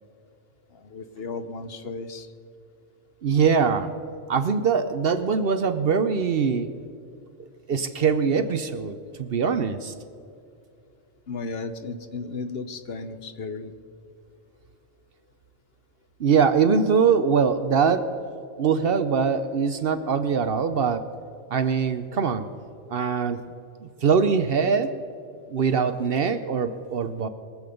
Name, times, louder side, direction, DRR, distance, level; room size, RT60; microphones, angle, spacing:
voice 1, 0.7-2.3 11.3-13.7, left 3 dB, 55° left, 9 dB, 1.0 m, -34 dB
voice 2, 3.2-3.9 4.3-6.7 7.7-9.9 16.2-18.1 18.6-21.1 21.5-22.5 22.9-23.4 23.8-24.9 25.5-27.3, right 6 dB, 55° right, 10 dB, 0.8 m, -22 dB
23.0 x 7.7 x 5.2 m, 2.5 s
omnidirectional pair, 1.3 m